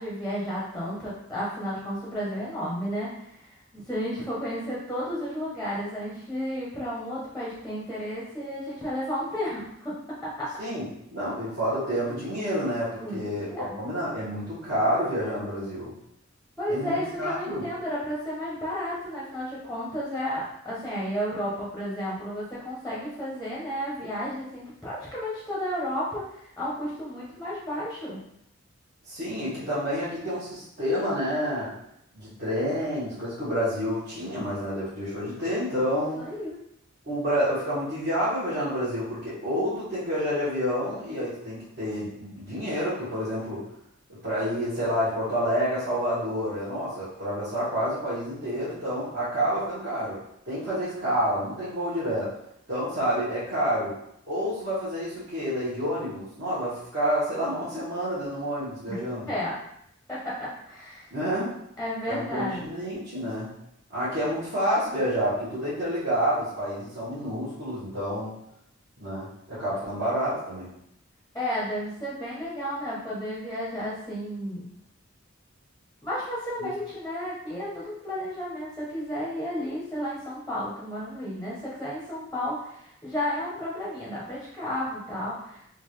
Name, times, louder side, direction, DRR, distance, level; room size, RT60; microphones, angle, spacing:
voice 1, 0.0-10.0 10.2-10.5 13.0-13.7 16.6-28.2 36.2-36.6 58.9-59.0 59.3-59.6 60.1-61.1 61.8-62.6 71.3-74.7 76.0-85.6, equal, ahead, -7 dB, 0.7 m, -32 dB
voice 2, 10.6-15.9 16.7-17.6 29.1-31.7 32.1-36.2 37.0-43.6 44.2-50.2 50.4-52.3 52.7-53.9 54.3-59.3 61.1-61.6 62.1-63.5 63.9-68.3 69.0-70.7, equal, 55° right, -12 dB, 1.4 m, -29 dB
3.8 x 2.5 x 3.1 m, 0.75 s
head